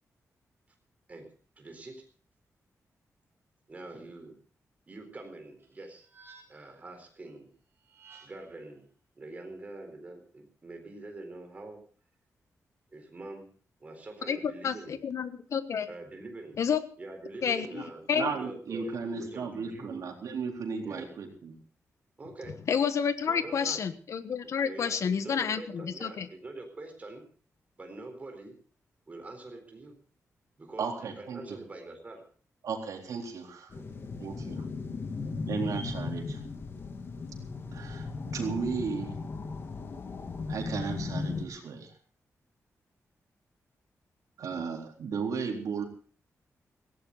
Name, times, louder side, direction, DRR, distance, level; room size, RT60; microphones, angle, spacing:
voice 1, 1.6-2.1 3.7-4.4 4.9-6.1 6.5-7.5 8.2-8.9 9.1-11.8 12.9-13.5 13.8-15.0 15.9-16.6 17.0-20.1 20.8-21.1 22.2-22.6 23.2-23.8 24.4-27.2 27.8-28.6 29.1-29.9 30.6-32.2 33.7-33.9, right 2 dB, 25° right, 4 dB, 4.0 m, -44 dB
sound 1, 5.6-6.8 7.8-8.6, right 5 dB, 45° right, 4.7 m, -56 dB
voice 2, 14.3-15.9 16.6-16.8 17.4-17.8 18.1-18.3 22.7-26.3, left 7 dB, 60° left, 11 dB, 1.3 m, -29 dB
voice 3, 18.1-21.6 30.8-31.6 32.6-33.7 34.2-34.7 35.5-36.4 37.7-39.2 40.5-41.9 44.4-45.8, right 5 dB, 80° right, 2 dB, 3.7 m, -35 dB
sound 2, 33.7-41.4, left 4 dB, 40° left, 1.7 m, -37 dB
18.0 x 16.0 x 4.0 m, 0.41 s
wide cardioid pair, 175°, 6 cm